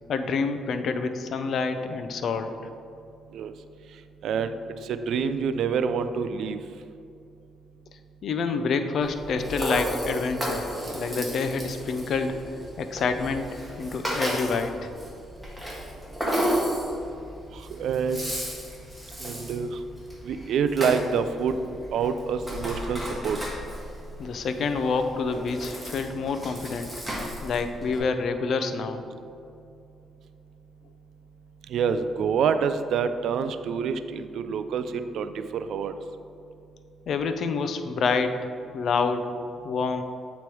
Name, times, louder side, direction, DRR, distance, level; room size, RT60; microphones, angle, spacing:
voice 1, 0.1-2.5 8.2-10.7 10.9-12.4 12.8-13.5 13.8-14.9 24.2-26.9 27.4-29.0 37.1-38.4 38.7-39.3 39.6-40.0, left 4 dB, 65° left, 8 dB, 0.5 m, -27 dB
voice 2, 4.2-4.5 4.8-6.6 17.5-18.3 19.2-19.8 20.2-21.6 21.9-23.4 31.7-35.9, right 6 dB, 75° right, 10 dB, 0.3 m, -27 dB
Rattle (instrument), 9.0-28.0, equal, ahead, 1.4 m, -33 dB
8.3 x 3.1 x 4.6 m, 2.5 s
cardioid pair, 90°, 0 cm